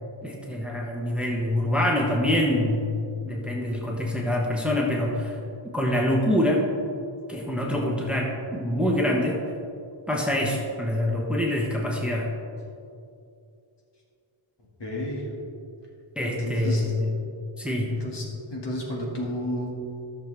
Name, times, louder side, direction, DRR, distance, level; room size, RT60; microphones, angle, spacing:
voice 1, 0.2-2.9 3.2-5.4 5.7-6.6 7.3-9.4 10.1-12.3 16.2-17.1 17.6-17.9, left 1 dB, ahead, -1 dB, 1.1 m, -25 dB
voice 2, 14.8-15.3 16.2-16.9 17.9-19.7, equal, 55° left, -3 dB, 2.2 m, -32 dB
14.0 x 6.8 x 3.4 m, 2.5 s
wide cardioid pair, 105°, 49 cm